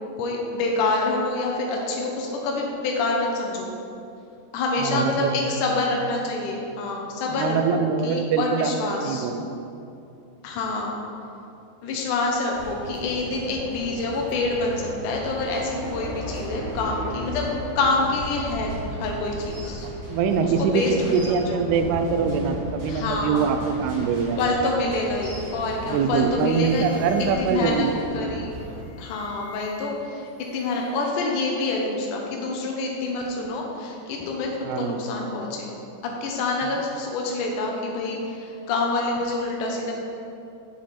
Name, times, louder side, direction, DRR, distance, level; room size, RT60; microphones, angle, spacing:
voice 1, 0.2-3.7 4.5-9.3 10.4-10.9 11.8-17.5 17.8-19.9 20.4-21.6 22.9-23.4 24.4-26.9 27.4-27.9 28.1-28.5 29.0-30.3 30.5-35.7 36.2-39.9, left 3 dB, 85° left, 0 dB, 1.8 m, -27 dB
voice 2, 4.8-5.4 7.3-8.7 9.0-9.5 20.1-24.7 25.9-28.0 34.6-35.1, right 6 dB, 80° right, 8 dB, 2.4 m, -24 dB
sound 1, 12.5-28.8, equal, 55° right, 2.9 m, -35 dB
sound 2, 25.6-25.8 26.1-27.8 28.6-30.1 30.3-31.1, left 1 dB, 40° left, 2.8 m, -48 dB
8.1 x 7.4 x 4.2 m, 2.7 s
omnidirectional pair, 4.8 m